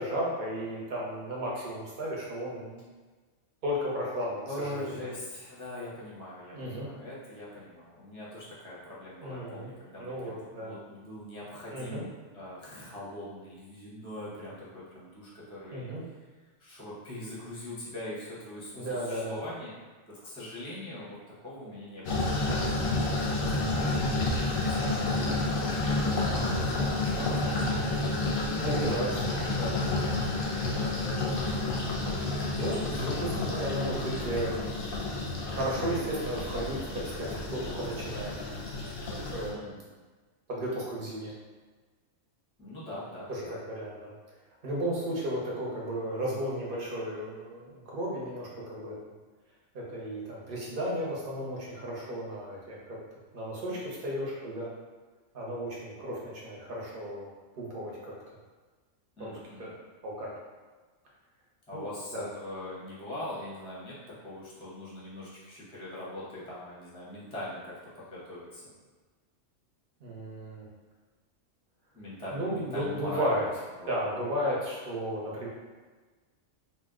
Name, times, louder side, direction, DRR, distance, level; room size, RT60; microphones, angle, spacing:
voice 1, 0.0-2.8 3.6-5.0 6.5-6.9 9.2-9.7 10.0-10.7 11.7-12.0 15.7-16.0 18.7-19.4 27.1-27.7 28.6-29.1 29.5-29.8 30.6-31.2 32.6-34.6 35.5-38.3 39.0-39.7 40.5-41.3 43.3-44.1 44.6-48.9 49.7-53.0 53.3-54.7 55.3-57.3 57.5-58.1 59.2-59.7 60.0-60.3 61.7-62.2 70.0-70.7 72.3-73.5 73.9-75.5, equal, 50° right, -4 dB, 0.8 m, -34 dB
voice 2, 4.4-15.9 16.6-19.7 20.1-27.8 28.4-29.4 29.9-30.0 39.4-39.8 42.6-43.5 53.5-53.8 59.2-59.7 61.7-68.6 71.9-73.5 73.8-73.9, left 1 dB, 5° left, -8 dB, 0.5 m, -42 dB
sound 1, 22.0-39.5, left 2 dB, 60° left, 0.6 m, -30 dB
2.7 x 2.1 x 3.5 m, 1.3 s
omnidirectional pair, 1.3 m